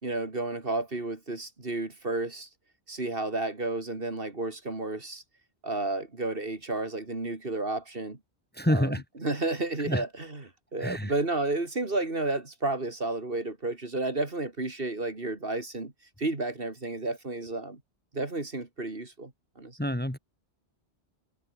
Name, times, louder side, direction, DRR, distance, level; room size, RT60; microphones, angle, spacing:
voice 1, 0.0-2.5 2.9-5.2 5.6-8.2 8.7-8.9 9.2-10.4 10.7-15.9 16.2-17.8 18.1-19.8, right 2 dB, 55° right, 3.2 m, -32 dB
voice 2, 8.5-9.0 9.8-10.0 10.8-11.1 19.8-20.2, equal, 10° left, 2.0 m, -27 dB
omnidirectional pair, 1.2 m